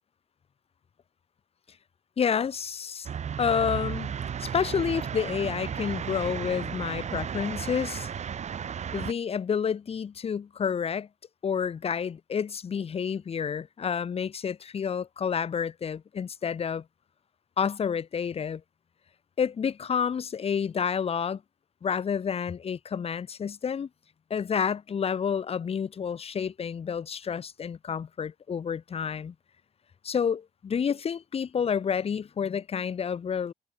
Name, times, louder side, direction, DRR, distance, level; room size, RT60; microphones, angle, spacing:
voice 1, 2.2-3.1 3.4-4.1 4.4-8.1 8.9-11.1 11.4-16.8 17.6-18.6 19.4-21.4 21.8-23.9 24.3-29.3 30.0-33.5, left 7 dB, 30° left, 0.5 m, -29 dB
sound 1, 3.0-9.1, right 7 dB, 35° right, 0.5 m, -34 dB
cardioid pair, 90°, 20 cm